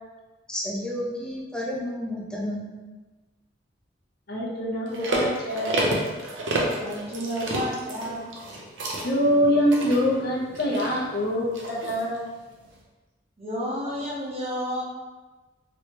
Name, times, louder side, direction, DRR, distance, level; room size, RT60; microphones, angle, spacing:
voice 1, 0.5-2.7, equal, 5° left, -3 dB, 0.5 m, -31 dB
voice 2, 4.3-5.9 9.0-12.2, equal, 55° left, -3 dB, 0.6 m, -24 dB
sound 1, 4.9-12.2 12.6-12.7, right 1 dB, 70° right, 0.6 m, -30 dB
voice 3, 6.8-8.2 13.4-14.8, equal, 35° right, -5 dB, 0.8 m, -31 dB
3.0 x 2.8 x 3.1 m, 1.2 s
head